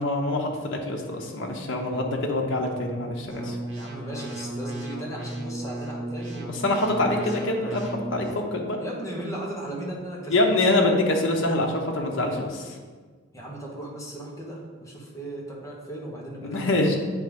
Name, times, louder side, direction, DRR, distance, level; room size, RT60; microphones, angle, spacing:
voice 1, 0.0-3.6 6.6-8.3 8.5-8.8 10.3-12.8 16.4-17.0, left 2 dB, 65° left, 0 dB, 1.0 m, -25 dB
sound 1, 3.3-8.3, right 1 dB, 65° right, 1.4 m, -34 dB
voice 2, 3.7-6.5 6.9-7.4 8.8-10.7 13.3-17.0, right 1 dB, 15° left, -3 dB, 1.3 m, -37 dB
8.0 x 3.5 x 5.2 m, 1.5 s
head